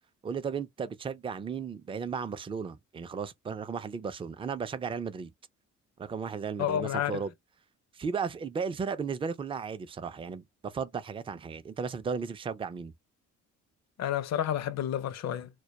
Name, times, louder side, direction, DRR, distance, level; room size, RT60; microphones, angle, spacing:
voice 1, 0.2-5.3 6.0-7.3 7.9-12.9, right 6 dB, 20° right, 0.3 m, -35 dB
voice 2, 6.6-7.2 14.0-15.5, left 10 dB, 60° left, 0.5 m, -30 dB
2.2 x 2.1 x 2.8 m
cardioid pair, 90°, 30 cm